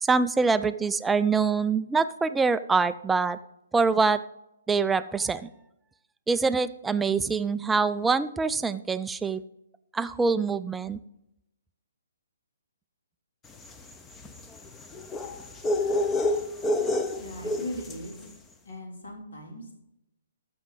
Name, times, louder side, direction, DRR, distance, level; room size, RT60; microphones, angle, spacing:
voice 1, 0.0-3.4 3.7-4.2 4.7-5.5 6.3-9.4 9.9-11.0, right 4 dB, 10° right, 13 dB, 0.3 m, -25 dB
sound 1, 13.6-18.1, left 1 dB, 10° left, 0.7 m, -29 dB
voice 2, 17.2-18.3 18.6-19.8, left 1 dB, 65° left, 1 dB, 2.9 m, -39 dB
14.5 x 6.1 x 3.9 m, 0.85 s
figure-of-eight pair, 130°, 0 cm